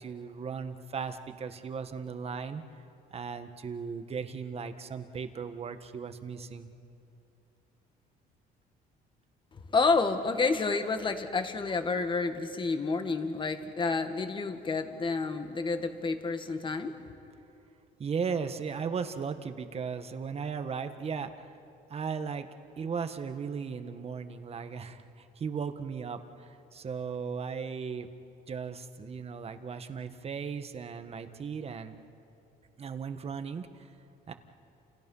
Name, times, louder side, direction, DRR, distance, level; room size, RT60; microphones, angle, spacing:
voice 1, 0.0-2.6 3.1-6.7 18.0-21.3 21.9-22.5 22.8-28.1 28.5-32.0 32.8-33.9 34.3-34.4, right 6 dB, 35° right, 8 dB, 1.5 m, -36 dB
voice 2, 9.7-16.9, left 4 dB, 30° left, 7 dB, 1.9 m, -29 dB
29.5 x 28.5 x 5.6 m, 2.7 s
cardioid pair, 110°, 17 cm